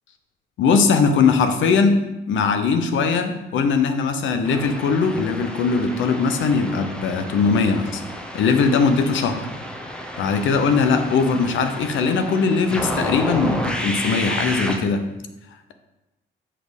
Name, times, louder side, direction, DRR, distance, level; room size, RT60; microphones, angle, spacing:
voice 1, 0.6-8.0 8.3-9.5 10.2-15.0, left 5 dB, 80° left, 7 dB, 0.9 m, -20 dB
sound 1, 4.4-14.8, equal, 5° left, 0.7 m, -31 dB
7.6 x 4.3 x 5.1 m, 0.97 s
cardioid pair, 145°, 20 cm